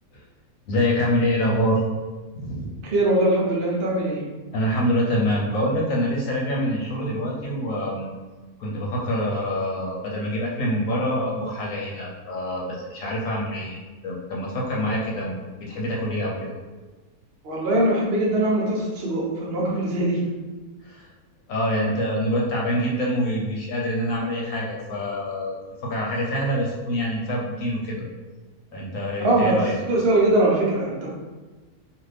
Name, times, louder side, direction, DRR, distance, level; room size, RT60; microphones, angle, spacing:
voice 1, 0.7-1.8 2.4-2.7 4.5-8.1 8.6-15.4 15.7-16.6 20.8-21.1 21.5-25.6 25.8-28.0 28.7-29.8, equal, 70° left, -3 dB, 1.0 m, -25 dB
voice 2, 2.9-4.2 17.4-20.2 29.2-29.5 29.9-31.1, right 1 dB, 55° right, -5 dB, 0.7 m, -21 dB
2.6 x 2.5 x 3.2 m, 1.3 s
omnidirectional pair, 1.5 m